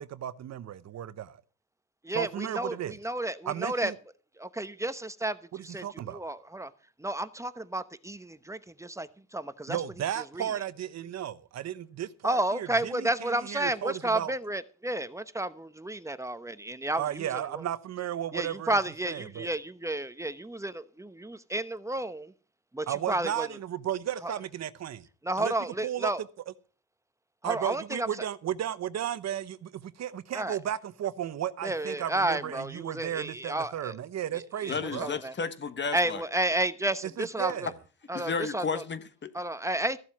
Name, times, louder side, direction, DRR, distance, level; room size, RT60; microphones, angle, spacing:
voice 1, 0.0-1.4 2.1-2.9 3.5-3.9 5.5-6.2 9.7-14.3 17.0-18.8 19.0-19.5 22.9-25.1 25.4-25.5 25.8-26.1 27.4-35.1 37.0-37.7, right 11 dB, 60° right, 0.8 m, -34 dB
voice 2, 2.0-3.9 4.4-5.8 6.1-6.7 7.0-9.8 10.3-10.5 12.2-17.3 17.5-17.6 18.3-22.3 22.7-23.5 24.2-24.3 25.2-26.2 27.4-28.1 30.3-30.6 31.6-33.9 34.6-35.3 35.9-37.7 38.1-38.8 39.3-40.0, right 1 dB, 10° right, 0.9 m, -31 dB
voice 3, 34.7-36.2 38.1-39.3, left 5 dB, 35° left, 1.3 m, -33 dB
14.0 x 7.3 x 6.0 m
cardioid pair, 90°, 30 cm